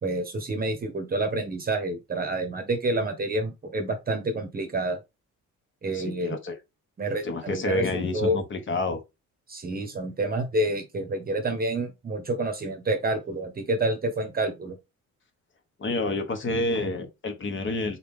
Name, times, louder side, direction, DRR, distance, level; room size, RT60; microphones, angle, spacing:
voice 1, 0.0-5.0 5.8-6.4 7.0-8.4 9.5-14.8, right 2 dB, 30° right, 0.9 m, -28 dB
voice 2, 5.9-6.6 7.2-9.0 15.8-18.0, left 2 dB, 40° left, 1.1 m, -29 dB
4.0 x 3.3 x 3.6 m
cardioid pair, 140°, 30 cm